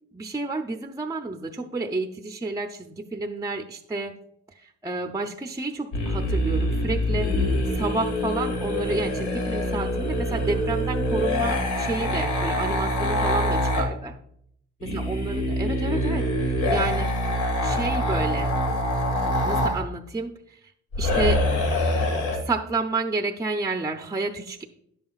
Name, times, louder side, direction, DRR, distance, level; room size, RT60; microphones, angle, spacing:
voice 1, 0.1-4.2 4.5-14.2 14.9-17.1 17.6-18.5 19.4-20.6 21.0-21.4 22.3-24.6, right 3 dB, 10° right, 5 dB, 0.5 m, -30 dB
sound 1, 5.9-13.8 14.8-19.8 20.9-22.4, left 1 dB, 85° left, 1.8 m, -25 dB
10.5 x 7.5 x 2.4 m, 0.72 s
cardioid pair, 90°, 30 cm